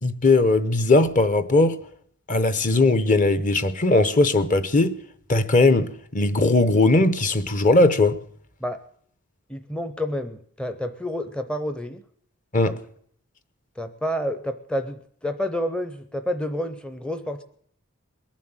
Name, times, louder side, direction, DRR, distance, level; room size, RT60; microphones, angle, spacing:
voice 1, 0.0-1.8 2.3-4.9 5.3-8.2 12.5-12.8, left 2 dB, 35° left, 0.8 m, -19 dB
voice 2, 9.5-12.0 12.7-12.8 13.8-17.4, equal, 5° left, 0.6 m, -29 dB
21.5 x 7.4 x 8.9 m
head